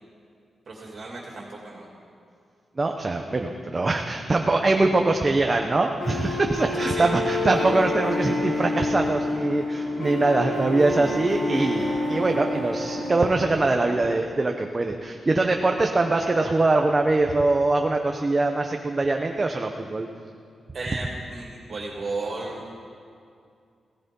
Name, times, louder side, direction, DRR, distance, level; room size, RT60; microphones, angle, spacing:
voice 1, 0.7-1.9 6.8-7.1 20.7-22.6, right 3 dB, 45° right, -3 dB, 2.7 m, -34 dB
voice 2, 2.8-20.1, right 2 dB, 25° right, 3 dB, 0.8 m, -23 dB
sound 1, 6.0-14.0, left 2 dB, 85° left, 4.4 m, -28 dB
16.5 x 15.0 x 5.4 m, 2.4 s
wide cardioid pair, 140°, 0 cm